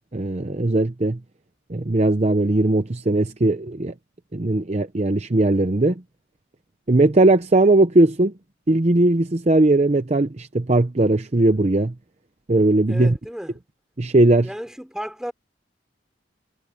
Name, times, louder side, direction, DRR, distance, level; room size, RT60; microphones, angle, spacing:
voice 1, 0.1-1.2 1.7-3.9 4.3-5.9 6.9-8.3 8.7-11.9 12.5-13.2 14.0-14.5, right 2 dB, 35° right, 0.7 m, -19 dB
voice 2, 12.9-13.5 14.4-15.3, equal, 5° right, 4.0 m, -33 dB
head